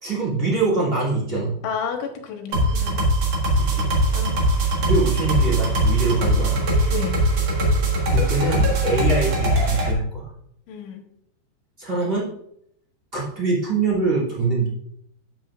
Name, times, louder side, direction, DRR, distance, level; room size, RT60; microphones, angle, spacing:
voice 1, 0.0-1.5 3.5-3.9 4.8-6.6 8.1-10.3 11.8-12.3 13.1-14.7, right 3 dB, 20° right, -6 dB, 1.7 m, -24 dB
voice 2, 1.6-3.0 4.1-4.5 6.9-7.2 10.7-11.0, left 6 dB, 85° left, 3 dB, 3.7 m, -31 dB
sound 1, 2.5-9.9, right 1 dB, 60° right, 1.7 m, -21 dB
11.0 x 7.7 x 2.5 m, 0.73 s
omnidirectional pair, 5.4 m